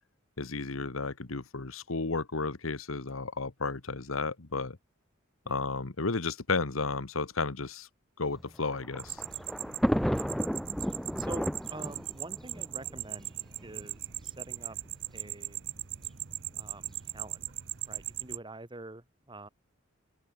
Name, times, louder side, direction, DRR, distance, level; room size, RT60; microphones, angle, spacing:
voice 1, 0.4-4.8 5.5-7.9 8.2-9.2, left 3 dB, 85° left, 1.4 m, -33 dB
Thunder, 8.4-13.7 14.5-14.6 14.9-15.0 16.0-16.3, equal, ahead, 0.8 m, -33 dB
sound 1, 9.0-18.4, right 16 dB, 60° right, 0.8 m, -39 dB
voice 2, 11.2-13.3 13.6-14.8 15.1-15.6 16.5-17.4 17.9-19.5, right 2 dB, 25° right, 1.8 m, -46 dB
open air
head